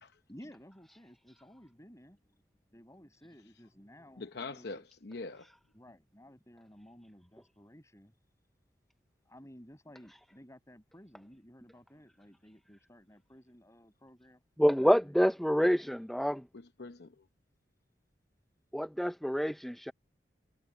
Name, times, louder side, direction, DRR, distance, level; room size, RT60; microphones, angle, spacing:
voice 1, 0.3-2.4 2.7-4.8 5.7-8.1 9.3-14.4 14.8-15.2, equal, 15° left, 6.3 m, -55 dB
voice 2, 4.2-5.5 16.5-17.3, left 3 dB, 65° left, 0.8 m, -43 dB
voice 3, 14.6-16.5 18.7-19.9, equal, ahead, 0.5 m, -27 dB
head